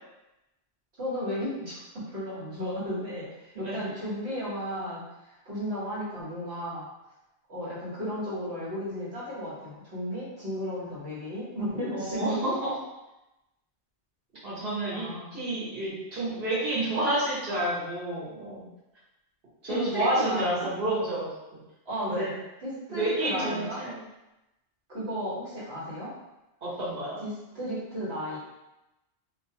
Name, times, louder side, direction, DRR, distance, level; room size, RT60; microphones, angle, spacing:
voice 1, 1.0-6.9 7.5-12.5 14.9-15.4 19.7-20.7 21.8-22.4 22.6-23.8 24.9-26.1 27.2-28.4, equal, 80° right, -9 dB, 1.5 m, -34 dB
voice 2, 11.9-12.7 14.4-15.1 15.3-18.6 19.6-21.3 22.1-22.3 22.9-24.0 26.6-27.2, right 1 dB, 65° right, -9 dB, 1.3 m, -29 dB
2.7 x 2.3 x 2.8 m, 0.96 s
omnidirectional pair, 1.1 m